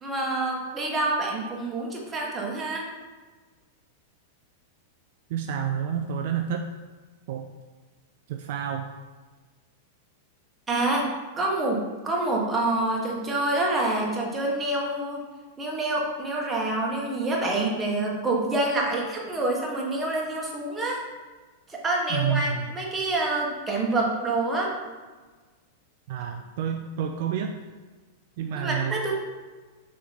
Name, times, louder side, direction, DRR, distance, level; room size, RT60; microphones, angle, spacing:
voice 1, 0.0-2.8 10.7-11.1 11.4-15.2 15.6-21.0 21.7-24.7 28.5-29.1, right 2 dB, 15° right, -2 dB, 1.5 m, -27 dB
voice 2, 5.3-6.6 7.3-7.5 8.3-8.9 22.1-22.7 26.1-27.6 28.4-29.1, right 8 dB, 55° right, 5 dB, 0.4 m, -29 dB
6.5 x 3.8 x 4.2 m, 1.3 s
figure-of-eight pair, 95°, 0 cm